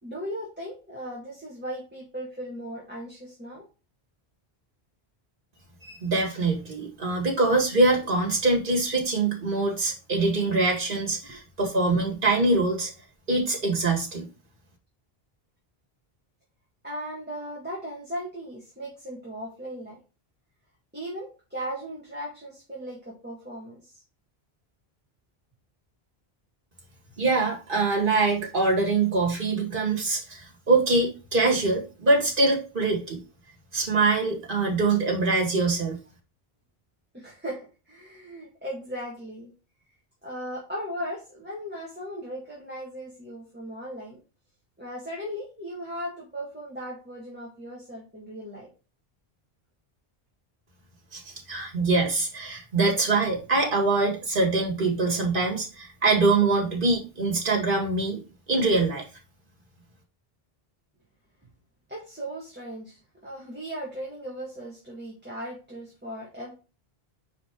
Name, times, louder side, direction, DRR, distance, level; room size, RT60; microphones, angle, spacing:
voice 1, 0.0-3.7 11.2-11.4 16.8-20.0 20.9-24.0 37.1-39.5 40.2-44.2 44.8-48.7 61.9-66.5, equal, 10° right, -5 dB, 1.8 m, -37 dB
voice 2, 5.8-12.9 13.3-14.3 27.2-33.2 33.7-36.0 51.1-51.2 51.5-58.2 58.5-59.0, right 3 dB, 55° right, 0 dB, 2.1 m, -24 dB
5.2 x 4.6 x 4.5 m, 0.32 s
omnidirectional pair, 1.0 m